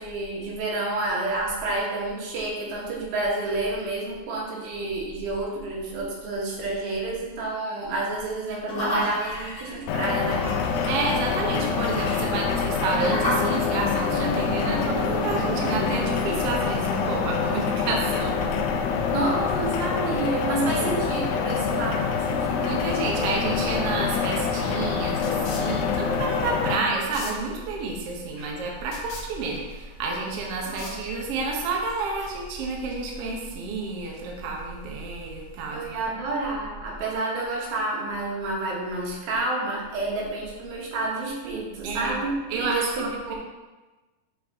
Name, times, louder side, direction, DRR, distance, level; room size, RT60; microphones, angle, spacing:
voice 1, 0.0-10.5 19.1-22.7 28.4-28.5 30.7-31.0 35.7-43.4, right 2 dB, 90° right, -3 dB, 3.3 m, -29 dB
sound 1, 8.7-18.3, equal, 35° left, 1.4 m, -33 dB
sound 2, 9.9-26.8, left 6 dB, 85° left, 2.4 m, -26 dB
voice 2, 10.6-18.8 20.7-21.0 22.6-36.0 41.8-42.2 42.5-43.3, right 3 dB, 60° right, -1 dB, 1.6 m, -30 dB
sound 3, 25.2-31.5, left 3 dB, 60° left, 1.9 m, -44 dB
9.8 x 4.2 x 3.6 m, 1.2 s
omnidirectional pair, 4.0 m